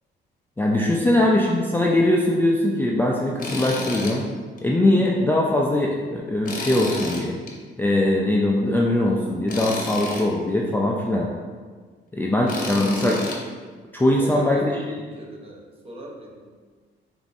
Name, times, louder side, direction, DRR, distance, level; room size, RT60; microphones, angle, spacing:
voice 1, 0.6-4.3 4.6-7.3 7.8-11.3 12.1-13.2 13.9-15.0, left 1 dB, 10° left, -3 dB, 0.4 m, -21 dB
Tools, 3.4-4.2 4.6-4.7 6.5-7.5 9.5-10.3 12.5-13.4, left 2 dB, 45° left, 0.8 m, -31 dB
voice 2, 14.2-16.5, right 1 dB, 30° right, -2 dB, 0.8 m, -38 dB
5.0 x 2.6 x 2.6 m, 1.5 s
cardioid pair, 90°, 20 cm